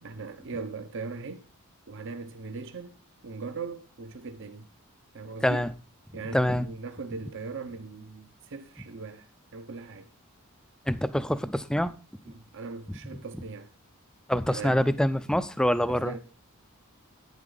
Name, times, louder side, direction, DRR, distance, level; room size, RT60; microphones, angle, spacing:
voice 1, 0.0-1.4 1.9-3.0 3.2-4.7 5.1-5.7 6.1-9.3 9.5-10.1 12.3-13.7 14.5-14.8 15.9-16.2, right 4 dB, 60° right, 0.8 m, -39 dB
voice 2, 6.3-6.7 10.9-11.9 14.3-16.1, equal, 5° left, 0.5 m, -25 dB
11.0 x 9.3 x 3.9 m
head